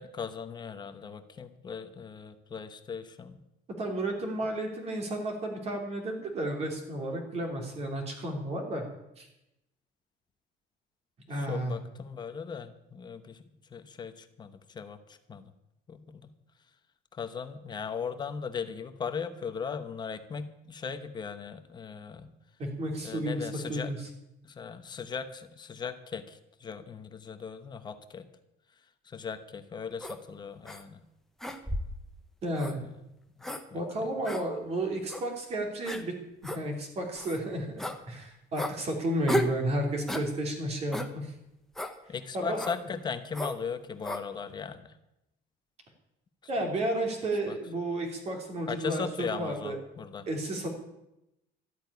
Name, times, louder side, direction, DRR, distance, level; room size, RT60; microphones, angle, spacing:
voice 1, 0.0-3.4 11.3-13.4 13.7-15.0 15.3-15.4 15.9-16.3 17.1-22.3 23.0-24.0 24.4-28.3 29.1-31.0 33.7-33.8 42.1-44.9 47.5-47.6 48.7-50.3, left 6 dB, 20° left, 10 dB, 1.0 m, -38 dB
voice 2, 3.8-8.9 9.2-9.3 11.3-11.8 22.6-24.0 32.4-32.8 33.7-36.1 36.4-41.3 42.3-42.6 46.5-49.8 50.3-50.7, right 1 dB, 30° right, 3 dB, 3.1 m, -32 dB
sound 1, 30.0-30.2 30.6-30.8 31.4-32.0 32.6-32.7 33.4-33.6 34.2-34.4 35.1-35.2 35.8-36.0 36.4-36.6 37.1-37.4 37.8-38.0 38.6-38.7 39.3-39.6 40.1-40.3 40.9-41.1 41.7-41.9 42.6-42.8 43.3-43.6 44.0-44.2, left 1 dB, ahead, 0.9 m, -33 dB
13.0 x 8.7 x 9.7 m, 0.88 s
cardioid pair, 175°, 20 cm